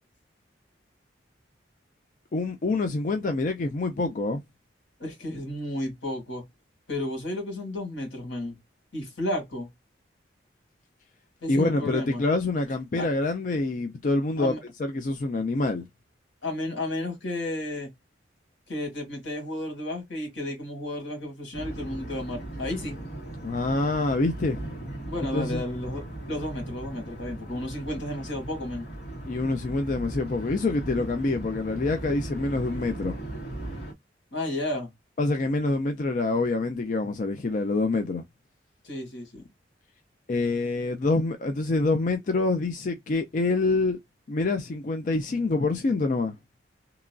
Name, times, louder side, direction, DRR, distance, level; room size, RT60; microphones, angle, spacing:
voice 1, 2.3-4.4 11.5-14.5 14.8-15.8 23.4-24.6 25.3-25.6 29.3-33.2 35.2-38.2 40.3-44.0 44.3-46.3, left 3 dB, 45° left, 0.4 m, -26 dB
voice 2, 5.0-6.4 6.9-8.6 8.9-9.7 11.4-12.2 13.0-13.1 14.4-14.6 16.4-17.9 18.7-23.0 25.1-28.9 34.3-34.9 38.8-39.5, left 1 dB, 85° left, 1.7 m, -32 dB
sound 1, 21.5-33.9, right 1 dB, 60° left, 1.7 m, -38 dB
2.9 x 2.4 x 2.2 m
head